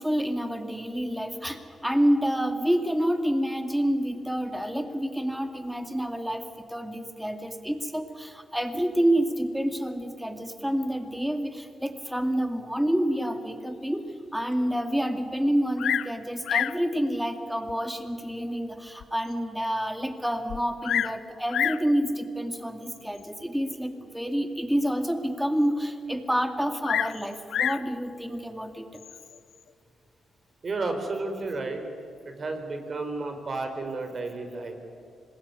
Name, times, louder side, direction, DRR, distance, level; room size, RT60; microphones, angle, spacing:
voice 1, 0.0-14.0 14.3-29.0, equal, 5° right, 7 dB, 2.4 m, -28 dB
Bird vocalization bird call bird song, 15.8-16.2 16.4-16.8 17.7-17.8 18.4-18.5 19.0-19.1 19.3-19.4 20.5-21.2 21.5-21.9 22.9-23.2 26.8-27.9 28.9-29.4, left 10 dB, 85° left, 0.6 m, -28 dB
voice 2, 30.6-31.8 32.2-34.7, right 3 dB, 45° right, 6 dB, 4.6 m, -32 dB
26.0 x 20.5 x 9.8 m, 2.5 s
cardioid pair, 85°, 0 cm